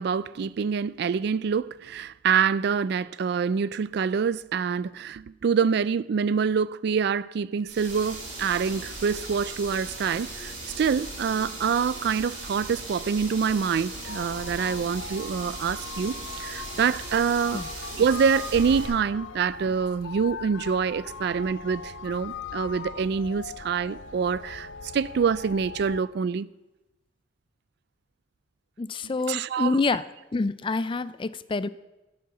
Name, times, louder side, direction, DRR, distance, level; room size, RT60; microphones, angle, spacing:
voice 1, 0.0-17.6 17.9-24.7 24.9-26.5 29.3-29.8, right 6 dB, 60° right, 0.3 m, -26 dB
sound 1, 7.7-18.9, right 2 dB, 40° right, 5.2 m, -38 dB
sound 2, 14.0-26.0, left 4 dB, 90° left, 0.6 m, -40 dB
voice 2, 28.8-30.0 30.3-31.7, left 3 dB, 25° left, 0.4 m, -27 dB
12.5 x 7.6 x 7.1 m
head